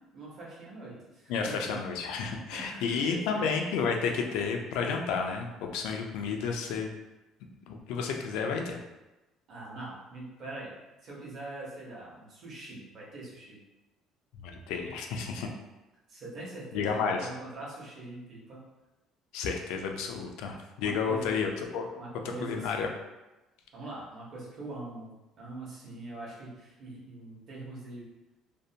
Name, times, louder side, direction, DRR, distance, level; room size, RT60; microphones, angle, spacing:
voice 1, 0.1-1.8 2.5-3.5 9.5-10.8 11.0-13.6 16.1-18.6 20.8-21.3 22.0-22.9 23.7-25.1 25.4-28.1, right 2 dB, 50° right, -6 dB, 0.9 m, -43 dB
voice 2, 1.3-6.9 7.7-8.8 14.3-15.5 16.7-17.3 19.3-21.9 22.4-22.9, left 5 dB, 80° left, 3 dB, 0.3 m, -31 dB
2.5 x 2.1 x 2.7 m, 1.0 s
cardioid pair, 145°, 0 cm